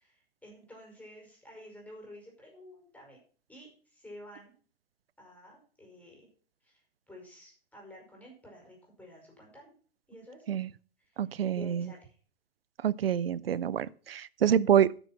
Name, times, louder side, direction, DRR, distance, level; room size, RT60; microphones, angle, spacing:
voice 1, 0.0-3.2 3.5-4.5 5.2-6.3 6.6-9.7 10.1-10.4 11.0-12.2, left 1 dB, 5° left, 5.1 m, -51 dB
voice 2, 11.2-11.9 12.8-14.9, right 9 dB, 75° right, 0.6 m, -26 dB
9.9 x 7.0 x 5.8 m
figure-of-eight pair, 100°, 30 cm